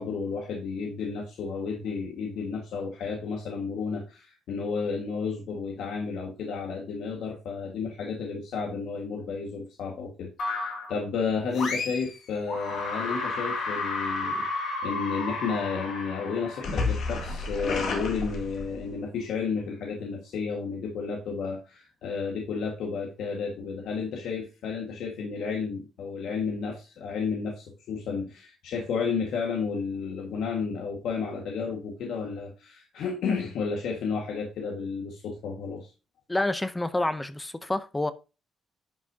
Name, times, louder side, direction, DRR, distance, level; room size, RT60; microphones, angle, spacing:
voice 1, 0.0-35.9, left 5 dB, 80° left, 1.7 m, -32 dB
sound 1, 10.4-11.0 11.5-12.2 12.5-18.9, left 3 dB, 60° left, 2.0 m, -31 dB
voice 2, 36.3-38.1, left 2 dB, 10° left, 0.6 m, -28 dB
11.0 x 6.0 x 2.8 m
cardioid pair, 170°, 0 cm